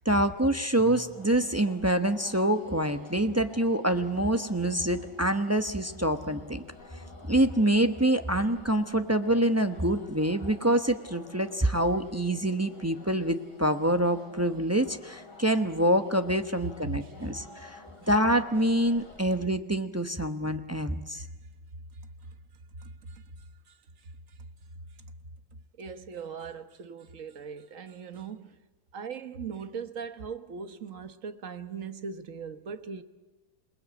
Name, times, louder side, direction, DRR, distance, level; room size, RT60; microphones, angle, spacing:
voice 1, 0.0-6.6 7.3-21.2, right 1 dB, 20° right, 0.3 m, -26 dB
sound 1, 1.0-19.4, left 2 dB, 60° left, 4.2 m, -51 dB
voice 2, 22.8-23.8 24.0-24.1 25.8-28.6 28.9-33.0, right 6 dB, 45° right, 1.5 m, -40 dB
28.0 x 20.0 x 8.5 m
omnidirectional pair, 2.1 m